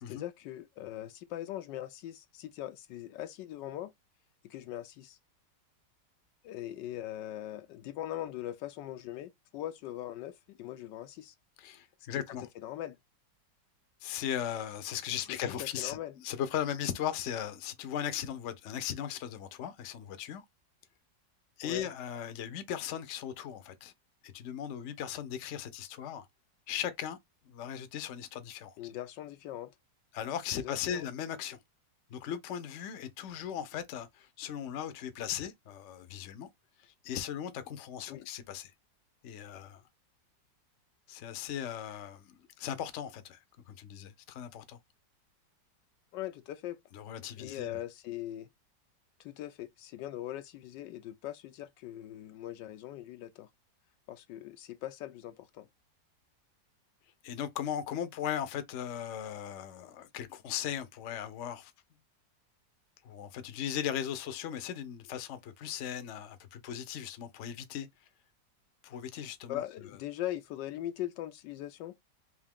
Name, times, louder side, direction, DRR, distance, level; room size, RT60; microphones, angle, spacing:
voice 1, 0.1-3.9 4.4-5.2 6.4-11.3 12.1-12.2 12.6-13.0 15.3-16.1 21.6-21.9 28.8-29.7 30.5-31.0 38.1-38.3 46.1-46.8 47.4-48.5 49.2-53.5 54.1-55.7 69.5-71.9, left 13 dB, 85° left, 1.3 m, -41 dB
voice 2, 11.6-12.5 14.0-20.4 21.6-23.9 24.2-26.3 26.7-27.2 27.5-28.7 30.1-31.6 32.1-36.5 36.8-38.7 39.2-39.8 41.1-43.4 43.7-44.8 46.9-47.8 57.2-61.7 63.0-67.9 68.8-69.6, left 9 dB, 60° left, 0.8 m, -38 dB
3.6 x 2.7 x 3.5 m
omnidirectional pair, 1.9 m